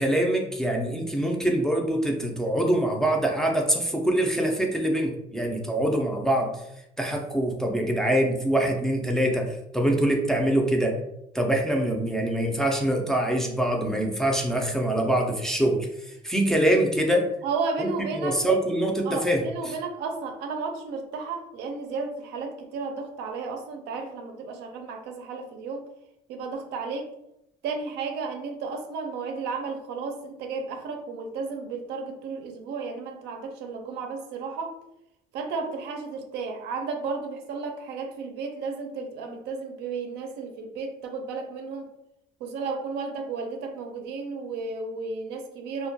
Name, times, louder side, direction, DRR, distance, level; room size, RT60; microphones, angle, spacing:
voice 1, 0.0-6.5 7.0-11.0 11.3-15.9 16.2-17.3 17.8-19.7, right 1 dB, 5° left, 0 dB, 0.3 m, -24 dB
voice 2, 17.4-18.4 19.0-25.9 26.3-27.1 27.6-34.7 35.3-41.9 42.4-45.9, right 4 dB, 80° right, 4 dB, 0.5 m, -33 dB
2.2 x 2.1 x 2.6 m, 0.85 s
cardioid pair, 110°, 17 cm